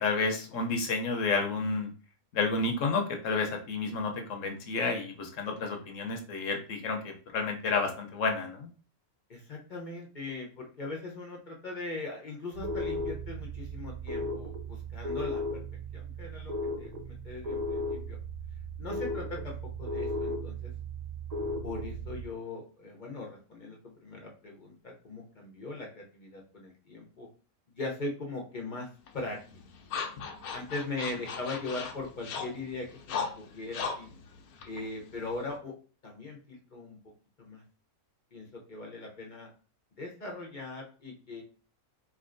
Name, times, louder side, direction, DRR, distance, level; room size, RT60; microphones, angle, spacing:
voice 1, 0.0-1.9 2.3-8.7, left 4 dB, 65° left, 3 dB, 1.0 m, -30 dB
voice 2, 9.3-15.6 15.9-16.5 16.8-18.2 18.8-20.7 21.6-24.7 25.0-27.3 27.8-28.9 29.1-29.4 30.5-34.1 34.6-35.7 36.0-37.0 37.4-37.6 38.3-39.5 40.0-41.4, left 2 dB, 40° left, -1 dB, 0.7 m, -40 dB
sound 1, 12.5-22.3, equal, 90° right, 0.3 m, -36 dB
sound 2, 29.1-35.6, left 5 dB, 80° left, 1.1 m, -39 dB
4.5 x 2.8 x 2.5 m, 0.39 s
omnidirectional pair, 1.6 m